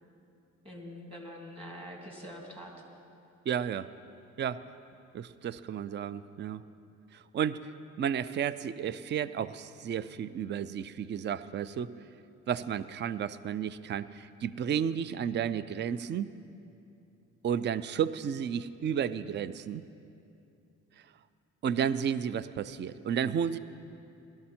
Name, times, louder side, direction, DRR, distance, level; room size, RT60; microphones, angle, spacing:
voice 1, 0.6-2.7, equal, 20° right, 0 dB, 2.8 m, -44 dB
voice 2, 3.5-3.9 4.4-4.6 5.1-6.6 7.1-7.7 8.0-11.9 12.5-16.3 17.4-19.9 21.6-23.6, right 8 dB, 35° right, 16 dB, 0.4 m, -32 dB
18.0 x 12.5 x 4.4 m, 2.7 s
cardioid pair, 90°, 30 cm